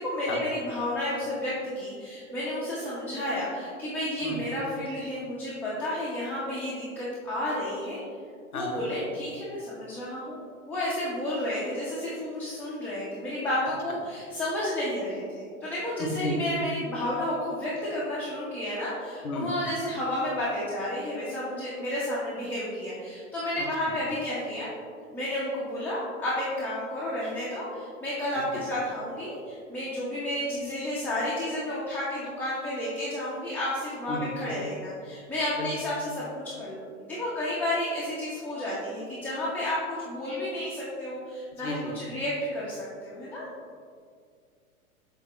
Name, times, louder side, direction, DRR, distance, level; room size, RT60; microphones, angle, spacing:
voice 1, 0.0-8.0 8.5-10.4 10.7-24.7 25.1-43.5, left 1 dB, 5° left, -9 dB, 1.0 m, -31 dB
voice 2, 8.5-8.8 16.0-16.4 19.2-19.5 23.6-23.7 28.5-28.6 34.1-34.3 35.6-35.7 41.6-42.0, left 1 dB, 80° left, 1 dB, 1.2 m, -32 dB
8.0 x 3.7 x 3.1 m, 2.1 s
hypercardioid pair, 110°, 42 cm